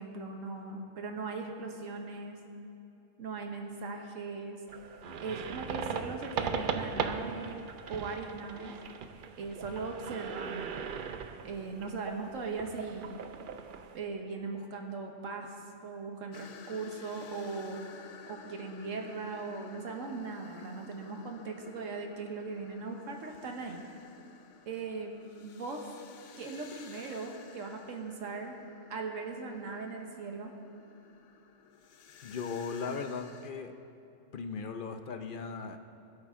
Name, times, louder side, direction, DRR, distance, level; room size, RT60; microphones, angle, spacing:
voice 1, 0.0-2.4 3.2-4.6 5.2-7.6 7.9-8.7 9.4-10.8 11.4-13.2 13.9-15.5 15.8-17.8 18.3-23.8 24.7-25.1 25.4-25.9 26.4-28.6 28.9-30.5, right 4 dB, 90° right, 3 dB, 1.5 m, -39 dB
sound 1, 4.7-14.0, right 6 dB, 55° right, 0.6 m, -39 dB
sound 2, 16.3-33.5, left 6 dB, 75° left, 1.0 m, -54 dB
voice 2, 32.2-33.7 34.3-35.8, left 5 dB, 50° left, 7 dB, 0.7 m, -37 dB
20.5 x 8.4 x 3.7 m, 2.7 s
omnidirectional pair, 1.3 m